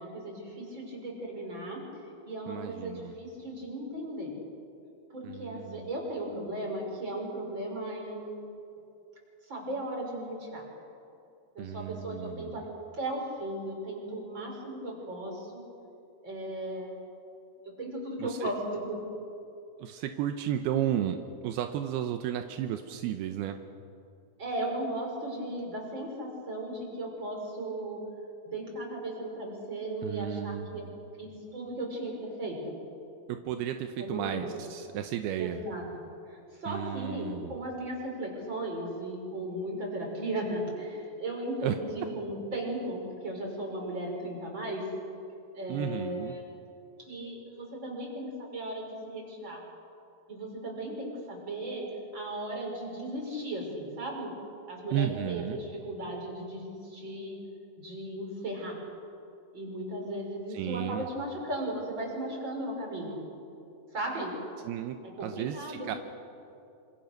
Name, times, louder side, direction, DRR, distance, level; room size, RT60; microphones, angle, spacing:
voice 1, 0.0-1.8 2.2-4.3 5.1-8.4 9.5-10.6 11.5-12.6 12.9-15.6 16.2-16.9 17.6-19.0 24.4-28.0 28.4-30.8 31.2-32.8 34.0-34.5 35.4-35.8 36.3-44.9 45.5-46.2 47.0-49.6 50.3-51.9 52.1-54.3 54.7-57.4 57.8-58.8 59.5-63.2 63.9-64.3 65.2-66.0, right 1 dB, 30° right, 0 dB, 6.3 m, -36 dB
voice 2, 2.5-3.2 5.2-5.9 11.6-12.6 18.2-18.5 19.8-23.6 30.0-30.9 33.3-35.6 36.7-37.6 41.6-41.8 45.7-46.4 54.9-55.6 60.5-61.1 64.6-66.0, right 11 dB, 80° right, 6 dB, 2.9 m, -33 dB
27.0 x 26.5 x 6.7 m, 2.7 s
omnidirectional pair, 4.5 m